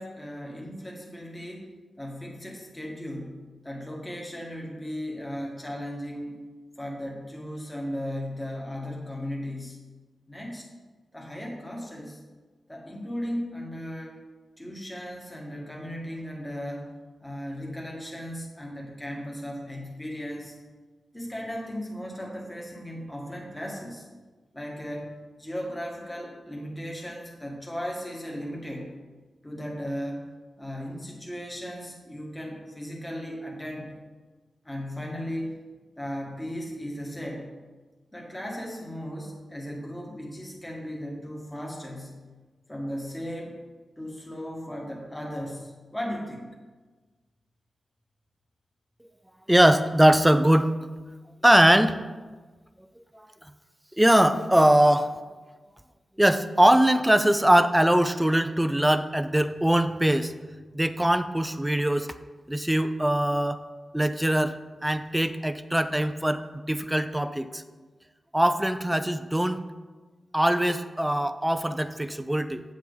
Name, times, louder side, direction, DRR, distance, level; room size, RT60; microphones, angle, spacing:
voice 1, 0.0-1.7 2.0-3.3 3.6-6.4 6.8-9.8 10.3-10.7 11.1-12.2 12.7-14.2 14.6-16.9 17.2-20.5 21.1-24.1 24.5-28.9 29.4-30.3 30.6-34.0 34.6-35.6 36.0-37.5 38.1-42.2 42.7-43.6 44.0-46.5, equal, 15° left, -2 dB, 1.8 m, -36 dB
voice 2, 49.5-50.7 51.4-52.0 54.0-55.1 56.2-60.3 60.7-62.1 62.5-63.6 63.9-66.4 66.7-67.6 68.3-69.7 70.3-72.6, right 1 dB, 10° right, 10 dB, 0.5 m, -21 dB
8.2 x 7.3 x 4.0 m, 1.3 s
cardioid pair, 65°, 0 cm